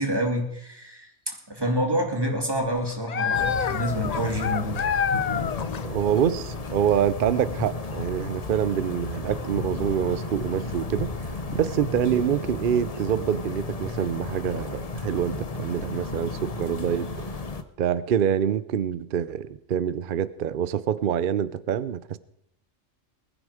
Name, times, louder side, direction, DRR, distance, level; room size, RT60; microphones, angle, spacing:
voice 1, 0.0-4.8, equal, 15° right, 2 dB, 2.5 m, -27 dB
sound 1, 2.5-5.9 6.1-6.2 7.1-8.1, left 7 dB, 55° left, 0.4 m, -28 dB
sound 2, 3.3-17.6, left 3 dB, 35° left, 0.8 m, -33 dB
voice 2, 5.8-11.1 11.5-17.3 17.8-22.2, right 9 dB, 55° right, 16 dB, 0.7 m, -26 dB
21.0 x 9.8 x 4.9 m, 0.77 s
omnidirectional pair, 1.4 m